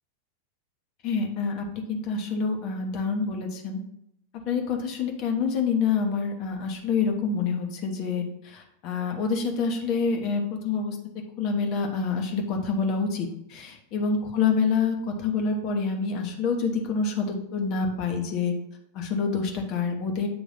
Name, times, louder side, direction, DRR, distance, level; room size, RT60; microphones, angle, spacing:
voice 1, 1.0-3.8 4.5-11.0 11.4-18.5 18.9-20.3, left 5 dB, 40° left, 2 dB, 1.1 m, -27 dB
7.9 x 3.0 x 5.7 m, 0.80 s
figure-of-eight pair, 90°, 0 cm